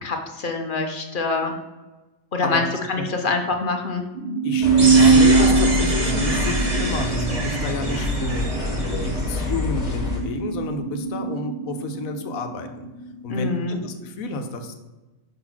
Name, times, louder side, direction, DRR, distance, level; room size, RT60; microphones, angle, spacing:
voice 1, 0.0-1.5 2.3-4.0 13.3-13.8, left 3 dB, 50° left, 4 dB, 0.7 m, -25 dB
sound 1, 4.2-13.0, right 5 dB, 55° right, 0.5 m, -21 dB
voice 2, 4.4-8.5 9.0-12.9 13.2-14.8, left 3 dB, 80° left, 7 dB, 1.2 m, -30 dB
sound 2, 4.6-10.2, left 1 dB, 30° left, 1.3 m, -25 dB
sound 3, 4.8-9.6, right 2 dB, 30° right, 1.0 m, -29 dB
5.7 x 4.0 x 5.8 m, 1.1 s
omnidirectional pair, 1.5 m